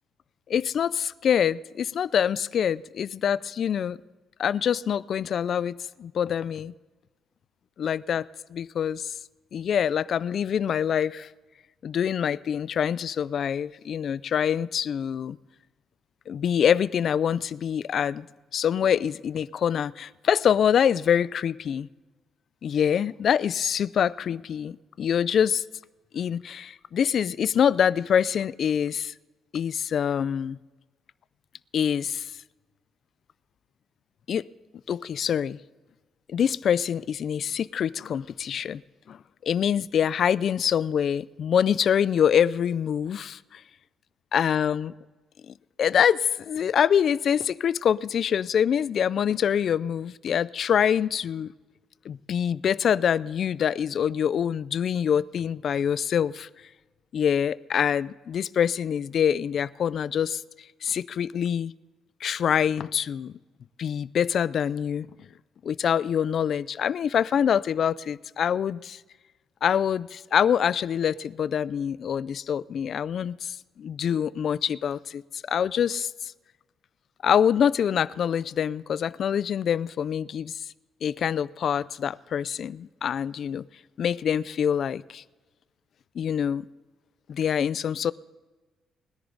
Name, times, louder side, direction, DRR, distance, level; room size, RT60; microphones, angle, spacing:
voice 1, 0.5-4.0 4.4-6.7 7.8-8.2 8.5-9.1 9.5-11.3 11.8-15.4 16.3-18.3 18.5-21.9 22.6-25.6 26.1-29.1 29.5-30.6 31.7-32.3 34.3-34.4 34.9-35.6 36.3-38.8 39.1-43.6 44.3-44.9 45.5-51.5 52.1-56.5 57.1-60.4 60.8-61.7 62.2-63.3 63.8-65.1 65.6-69.0 69.6-76.3 77.2-80.7 81.0-83.6 84.0-85.2 86.2-86.7 87.3-88.1, left 8 dB, 45° left, 0.3 m, -25 dB
20.5 x 10.5 x 3.9 m
cardioid pair, 170°, 0 cm